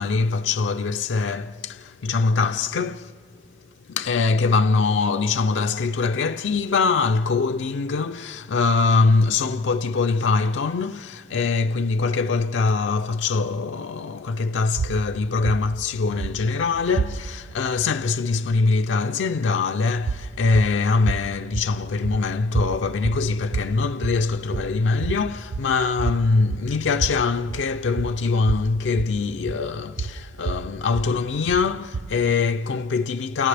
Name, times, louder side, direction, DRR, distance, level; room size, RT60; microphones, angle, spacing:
voice 1, 0.0-3.1 3.9-33.5, left 4 dB, 75° left, 0.4 m, -23 dB
sound 1, 14.8-17.6 20.0-32.3, right 4 dB, 70° right, 0.4 m, -31 dB
29.0 x 28.5 x 3.4 m
head